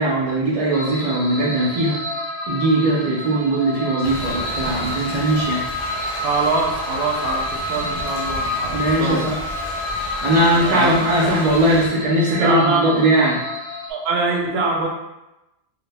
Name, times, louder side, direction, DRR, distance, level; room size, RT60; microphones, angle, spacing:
voice 1, 0.0-2.0 2.5-5.6 8.7-9.4 10.2-13.4, right 1 dB, 55° right, -5 dB, 0.4 m, -19 dB
sound 1, 0.7-13.9, left 1 dB, 70° left, 0.8 m, -29 dB
Thunder / Rain, 4.0-11.9, left 1 dB, 50° left, 0.4 m, -33 dB
voice 2, 6.2-9.3 10.5-10.9 12.4-13.4 13.9-14.9, right 3 dB, 80° right, 1 dB, 0.8 m, -23 dB
2.3 x 2.1 x 3.3 m, 0.96 s
omnidirectional pair, 1.0 m